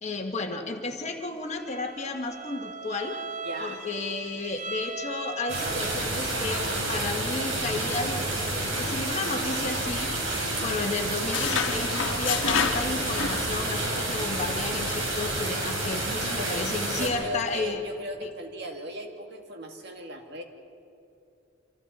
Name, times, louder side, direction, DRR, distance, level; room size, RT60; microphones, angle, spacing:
voice 1, 0.0-3.2 3.6-8.3 8.7-10.1 10.6-17.8 18.2-18.3, left 3 dB, 35° left, 3 dB, 1.4 m, -33 dB
Bowed string instrument, 1.5-6.2, right 3 dB, 40° right, 0.9 m, -39 dB
voice 2, 3.4-3.8 16.4-20.4, equal, 60° right, 3 dB, 2.0 m, -37 dB
sound 1, 5.5-17.1, right 2 dB, 80° right, 4.8 m, -29 dB
sound 2, 9.8-10.6 10.9-13.9 14.2-14.4 14.9-15.1, left 6 dB, 70° left, 1.4 m, -30 dB
28.5 x 26.5 x 4.2 m, 2.6 s
head